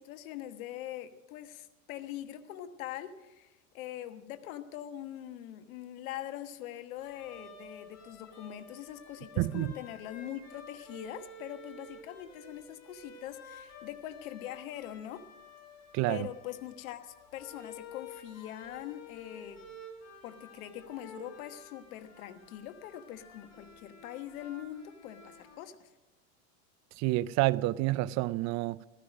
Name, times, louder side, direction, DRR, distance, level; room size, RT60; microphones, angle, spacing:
voice 1, 0.0-15.2 16.1-19.6 20.2-25.9, left 12 dB, 75° left, 1.3 m, -43 dB
sound 1, 7.0-25.6, left 2 dB, 40° left, 4.3 m, -51 dB
voice 2, 9.4-9.7 15.9-16.3 27.0-28.8, right 18 dB, 45° right, 0.4 m, -29 dB
15.0 x 14.0 x 6.3 m
supercardioid pair, 115°, 42 cm